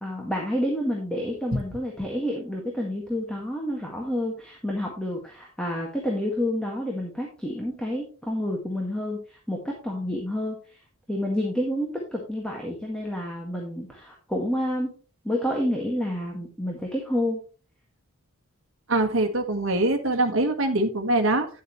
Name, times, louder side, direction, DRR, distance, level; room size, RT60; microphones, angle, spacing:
voice 1, 0.0-10.6 11.1-14.9 15.2-17.4, left 1 dB, 5° left, -1 dB, 1.7 m, -29 dB
voice 2, 18.9-21.5, right 2 dB, 60° right, 5 dB, 1.5 m, -23 dB
10.5 x 7.9 x 3.1 m, 0.36 s
head